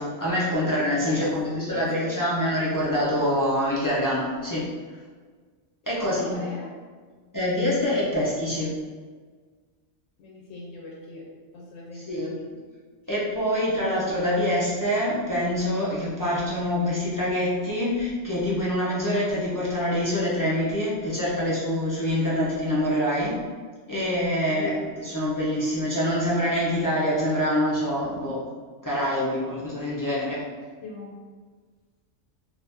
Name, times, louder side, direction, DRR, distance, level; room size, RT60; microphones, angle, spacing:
voice 1, 0.0-4.7 5.9-6.4 7.3-8.7 12.1-12.4 13.1-23.3 23.9-24.7 25.0-28.4 28.8-30.4, left 1 dB, 25° left, -9 dB, 0.5 m, -25 dB
voice 2, 1.7-2.3 5.8-6.7 10.2-11.2 11.5-12.6 24.5-24.9 30.8-31.1, left 3 dB, 85° left, -4 dB, 1.0 m, -39 dB
2.7 x 2.5 x 3.5 m, 1.5 s
omnidirectional pair, 1.3 m